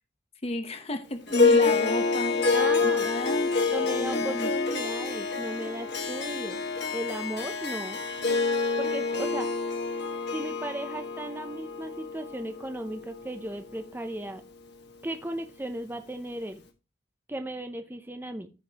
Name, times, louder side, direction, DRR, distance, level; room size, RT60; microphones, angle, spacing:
voice 1, 0.4-2.4 3.0-3.5 3.8-4.5, left 1 dB, 30° left, 0.8 m, -32 dB
Harp, 1.3-13.8, left 4 dB, 60° left, 1.4 m, -27 dB
voice 2, 2.4-3.1 3.7-6.6 6.9-8.0 8.8-9.5 10.3-14.4 15.0-16.6 17.3-18.5, right 1 dB, 10° right, 0.6 m, -36 dB
14.5 x 5.2 x 2.9 m
head